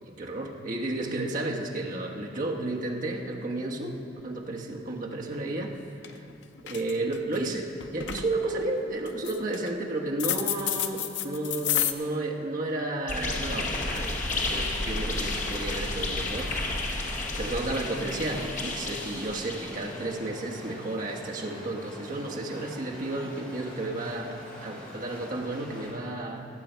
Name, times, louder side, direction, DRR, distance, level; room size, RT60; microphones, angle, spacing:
voice 1, 0.0-4.0 4.2-5.7 6.1-6.3 6.6-16.5 16.9-26.4, right 2 dB, 45° right, -1 dB, 1.2 m, -32 dB
sound 1, 5.6-5.7 6.0-6.3 6.6-7.4 7.8-8.3 9.1-9.7 10.2-11.9, left 11 dB, 80° left, 0.6 m, -29 dB
sound 2, 13.1-20.1, left 2 dB, 45° left, 1.0 m, -32 dB
sound 3, 13.9-25.9, equal, 25° left, 2.5 m, -45 dB
18.0 x 7.7 x 4.5 m, 2.8 s
head